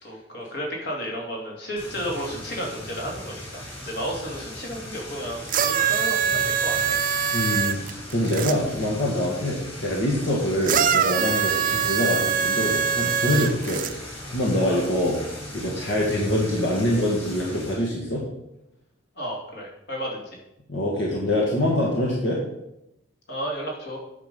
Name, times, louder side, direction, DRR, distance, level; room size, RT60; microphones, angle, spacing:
voice 1, 0.0-7.0 14.7-14.9 19.2-20.2 23.3-24.0, equal, 60° left, -1 dB, 2.5 m, -33 dB
sound 1, 1.8-17.7, left 1 dB, 30° left, 3.7 m, -38 dB
sound 2, 5.5-8.5 10.6-13.9 14.8-14.9, right 8 dB, 45° right, 0.5 m, -23 dB
voice 2, 7.3-18.2 20.7-22.4, left 1 dB, 80° left, -3 dB, 1.8 m, -25 dB
9.3 x 6.1 x 5.4 m, 0.87 s
head